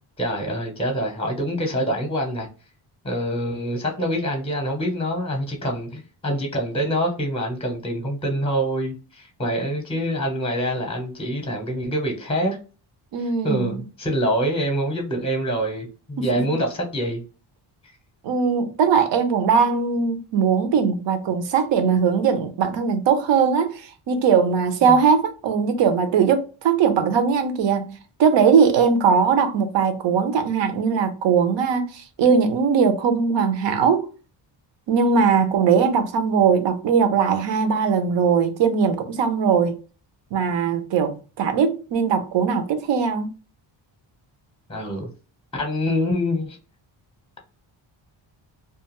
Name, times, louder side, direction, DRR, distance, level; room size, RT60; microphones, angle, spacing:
voice 1, 0.2-2.5 3.0-12.6 13.4-17.2 24.8-25.0 44.7-45.1 45.5-46.6, equal, 10° left, 0.7 m, -25 dB
voice 2, 13.1-13.8 16.2-16.3 18.2-34.1 34.9-39.8 40.3-43.3, right 6 dB, 65° right, 0.6 m, -20 dB
2.4 x 2.3 x 2.9 m
cardioid pair, 105°, 48 cm